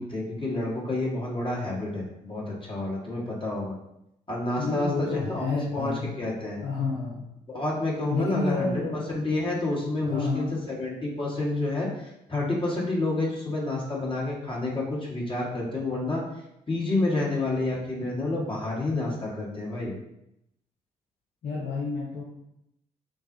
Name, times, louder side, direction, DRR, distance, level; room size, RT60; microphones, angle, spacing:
voice 1, 0.0-3.8 4.3-5.4 5.7-6.6 7.5-11.9 12.3-16.2 16.7-19.9, left 2 dB, 25° left, -4 dB, 1.5 m, -29 dB
voice 2, 4.6-6.1 6.6-7.2 8.1-9.0 10.0-10.5 21.4-22.2, left 3 dB, 65° left, -5 dB, 0.9 m, -29 dB
6.0 x 2.3 x 2.6 m, 0.81 s
hypercardioid pair, 45°, 19 cm